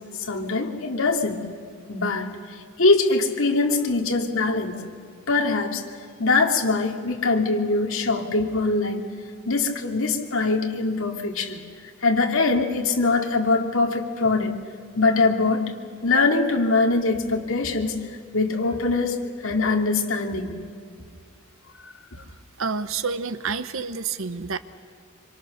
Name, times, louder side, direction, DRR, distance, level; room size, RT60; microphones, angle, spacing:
voice 1, 0.1-1.5 1.9-4.8 5.3-5.8 6.2-9.1 9.5-11.6 12.0-14.5 15.0-15.6 16.0-18.0 18.3-20.6 21.8-21.9, left 3 dB, 65° left, 2 dB, 2.4 m, -23 dB
voice 2, 22.6-24.6, right 5 dB, 65° right, 13 dB, 0.9 m, -29 dB
26.0 x 25.5 x 6.5 m, 2.1 s
head